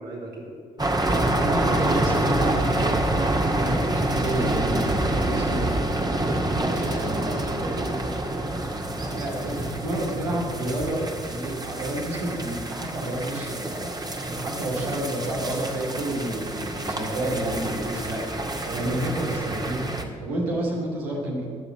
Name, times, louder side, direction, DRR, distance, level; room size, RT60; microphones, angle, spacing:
voice 1, 0.0-1.5 3.0-3.5 5.0-5.8 6.6-8.3 18.6-19.1 20.4-20.6, right 2 dB, 65° right, -4 dB, 4.0 m, -37 dB
sound 1, 0.8-20.0, right 1 dB, 20° right, 2.0 m, -27 dB
voice 2, 1.2-5.8 6.5-7.2 8.9-18.3 18.7-19.9 20.2-21.5, right 1 dB, 80° right, -2 dB, 2.9 m, -30 dB
20.5 x 7.2 x 7.3 m, 2.2 s
hypercardioid pair, 40°, 18 cm